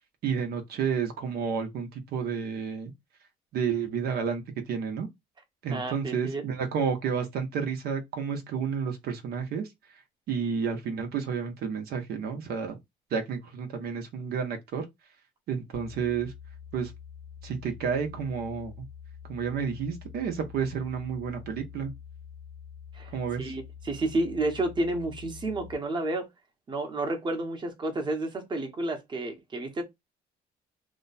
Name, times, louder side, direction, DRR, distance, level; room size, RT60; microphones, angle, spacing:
voice 1, 0.2-2.9 3.5-5.1 5.6-9.7 10.3-12.8 13.1-14.8 15.5-16.3 16.7-16.9 17.4-18.7 19.3-21.9 23.1-23.6, right 6 dB, 70° right, 0.9 m, -31 dB
voice 2, 5.7-6.4 22.9-26.3 26.7-29.8, right 2 dB, 25° right, 1.0 m, -31 dB
sound 1, 15.7-25.7, left 8 dB, 75° left, 0.6 m, -46 dB
2.9 x 2.2 x 4.0 m
cardioid pair, 110°, 17 cm